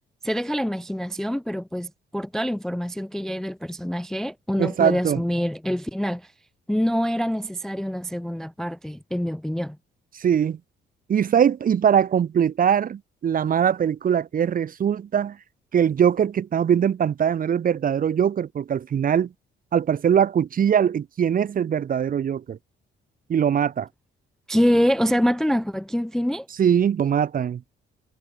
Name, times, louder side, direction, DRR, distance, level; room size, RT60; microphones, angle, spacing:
voice 1, 0.2-6.3 6.7-9.8 24.5-26.5, equal, ahead, 0.3 m, -25 dB
voice 2, 4.6-5.2 10.2-10.6 11.1-15.4 15.7-19.3 19.7-22.6 23.3-23.9 26.6-27.6, right 8 dB, 45° right, 0.8 m, -21 dB
cardioid pair, 90°, 20 cm